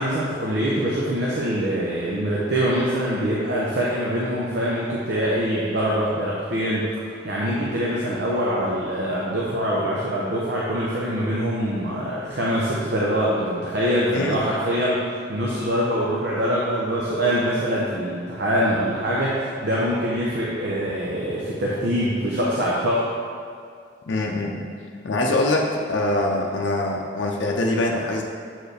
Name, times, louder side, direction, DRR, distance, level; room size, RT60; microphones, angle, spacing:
voice 1, 0.0-6.9 7.2-23.0, equal, 60° right, -6 dB, 0.8 m, -24 dB
voice 2, 24.1-24.7 25.0-28.2, left 2 dB, 70° left, -1 dB, 0.5 m, -23 dB
7.5 x 4.6 x 3.3 m, 2.3 s
head